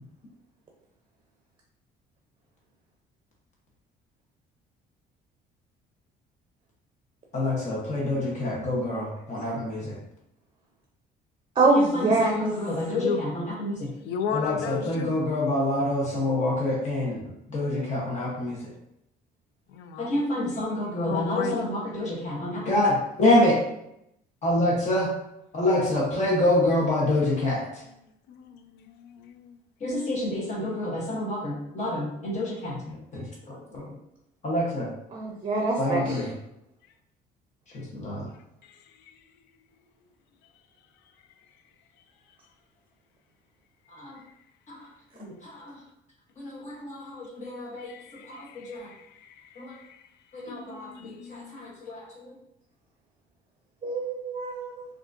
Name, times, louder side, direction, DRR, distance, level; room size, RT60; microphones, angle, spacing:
voice 1, 7.3-10.0 11.7-13.9 14.3-17.2 17.5-18.6 20.0-23.6 24.4-25.1 25.5-27.6 29.8-33.8 34.4-34.9 35.8-36.3 37.7-38.3 44.0-44.2 44.7-44.8 45.2-45.8 46.4-47.9 48.3-48.9 49.6-49.7 50.3-52.1, left 1 dB, 45° left, -4 dB, 0.9 m, -27 dB
voice 2, 11.6-12.4 35.1-36.2 53.8-54.9, right 3 dB, 30° right, 0 dB, 0.6 m, -24 dB
voice 3, 12.8-13.2 14.0-15.2 19.7-20.2 20.8-21.7 28.0-29.6 37.7-37.8 38.6-39.2 44.2-44.3 47.8-50.1 50.5-51.7, left 7 dB, 80° left, 8 dB, 0.4 m, -36 dB
3.5 x 2.4 x 2.5 m, 0.81 s
cardioid pair, 110°, 17 cm